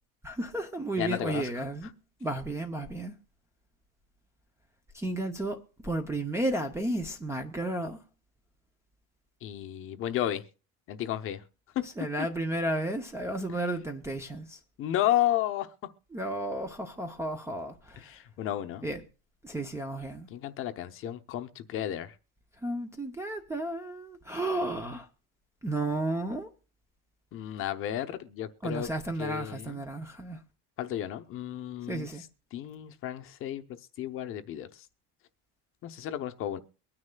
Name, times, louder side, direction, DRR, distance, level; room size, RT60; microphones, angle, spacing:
voice 1, 0.2-1.9 2.2-3.1 4.9-8.0 11.8-14.6 16.1-18.1 18.8-19.0 19.4-20.3 22.6-25.1 25.6-26.5 28.6-30.4 31.9-32.2, right 1 dB, 10° right, 0.5 m, -33 dB
voice 2, 1.0-1.5 9.4-10.4 10.9-11.4 11.7-11.8 13.5-13.6 14.8-15.7 18.0-18.8 20.3-22.1 27.3-28.9 29.2-29.8 30.8-32.1 32.5-34.9 35.8-36.6, left 12 dB, 35° left, 0.7 m, -32 dB
23.0 x 9.7 x 2.2 m
cardioid pair, 175°, 36 cm